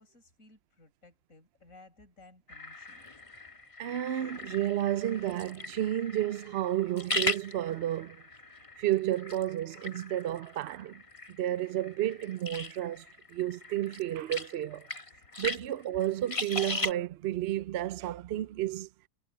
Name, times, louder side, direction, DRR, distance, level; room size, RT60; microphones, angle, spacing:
voice 1, 0.0-3.1, left 2 dB, 55° left, 5.7 m, -58 dB
sound 1, 2.5-16.9, left 2 dB, 20° left, 1.4 m, -39 dB
voice 2, 3.8-8.2 8.8-11.0 11.3-14.9 15.4-18.9, right 13 dB, 75° right, 0.6 m, -31 dB
omnidirectional pair, 1.6 m